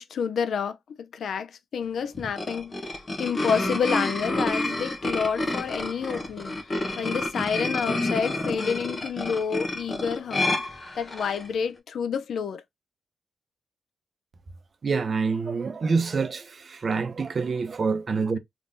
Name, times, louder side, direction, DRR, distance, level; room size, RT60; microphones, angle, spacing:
voice 1, 0.0-6.6 7.0-12.6, left 6 dB, 75° left, 0.5 m, -29 dB
sound 1, 2.1-11.5, left 2 dB, 35° left, 1.0 m, -29 dB
voice 2, 14.8-18.4, right 4 dB, 50° right, 0.8 m, -26 dB
3.3 x 3.0 x 2.6 m
cardioid pair, 85°, 0 cm